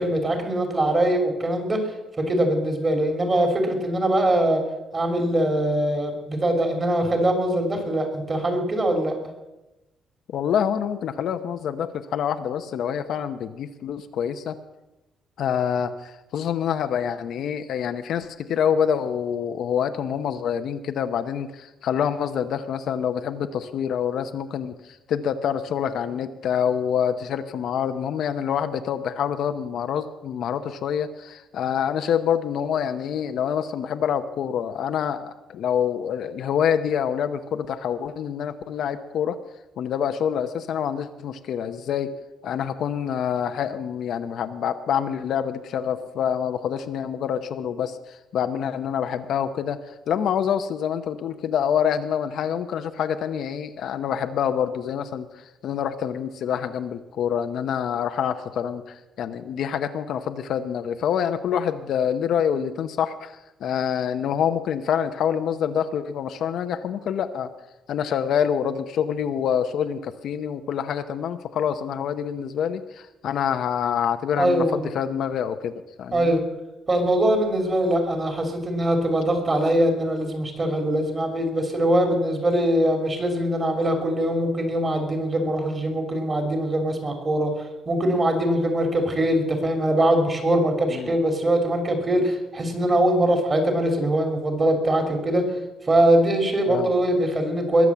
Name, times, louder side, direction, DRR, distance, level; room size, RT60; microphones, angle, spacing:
voice 1, 0.0-1.8 2.2-4.6 4.9-9.2 74.4-74.9 76.1-76.4 76.9-87.5 87.9-95.5 95.9-97.9, right 1 dB, 25° right, 4 dB, 3.0 m, -22 dB
voice 2, 10.3-14.6 15.4-39.4 39.8-42.1 42.4-67.5 67.9-75.7 76.0-76.4 90.9-91.1 96.7-96.9, left 8 dB, 60° left, 8 dB, 0.8 m, -26 dB
21.0 x 7.3 x 7.3 m, 0.98 s
cardioid pair, 155°, 0 cm